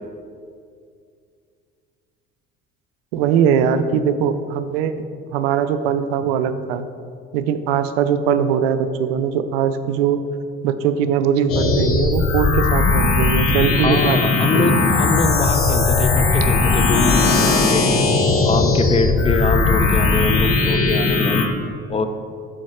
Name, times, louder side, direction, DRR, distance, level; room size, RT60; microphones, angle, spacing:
voice 1, 3.1-4.9 5.3-6.9 7.3-10.2 10.6-14.8, right 7 dB, 80° right, 11 dB, 0.5 m, -21 dB
sound 1, 11.5-21.5, left 3 dB, 50° left, 1.0 m, -18 dB
voice 2, 13.7-18.0 18.4-21.5 21.9-22.1, left 3 dB, 20° left, 8 dB, 0.5 m, -23 dB
6.4 x 4.6 x 4.3 m, 2.3 s
hypercardioid pair, 65°, 30 cm